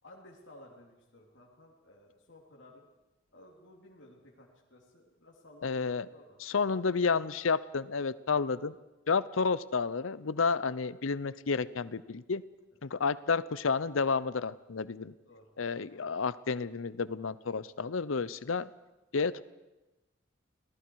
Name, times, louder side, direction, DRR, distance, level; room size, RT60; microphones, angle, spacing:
voice 1, 0.0-2.9 3.3-7.1 15.2-15.5 15.9-16.1, left 1 dB, 65° left, -3 dB, 3.1 m, -56 dB
voice 2, 5.6-6.1 6.4-8.7 9.1-12.4 12.8-15.1 15.6-18.7 19.1-19.4, left 5 dB, 80° left, 17 dB, 0.7 m, -31 dB
29.5 x 19.0 x 4.8 m, 1.1 s
head